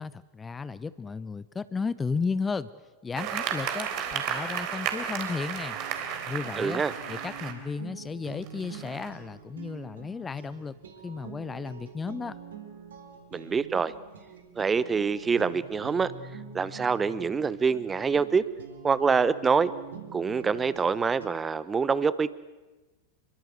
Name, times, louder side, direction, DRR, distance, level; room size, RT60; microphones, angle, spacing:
voice 1, 0.0-2.7 3.0-5.8 6.3-6.8 7.1-10.8 11.0-12.4, left 5 dB, 15° left, 17 dB, 0.8 m, -34 dB
sound 1, 3.1-7.5 8.2-9.1, right 8 dB, 40° right, 3.7 m, -33 dB
sound 2, 5.7-21.3, right 6 dB, 65° right, 4.2 m, -46 dB
voice 2, 6.6-6.9 13.3-13.9 14.6-16.1 16.5-18.4 18.8-19.7 20.1-22.3, right 5 dB, 15° right, 17 dB, 1.0 m, -25 dB
28.0 x 23.0 x 8.1 m, 1.2 s
figure-of-eight pair, 90°, 0 cm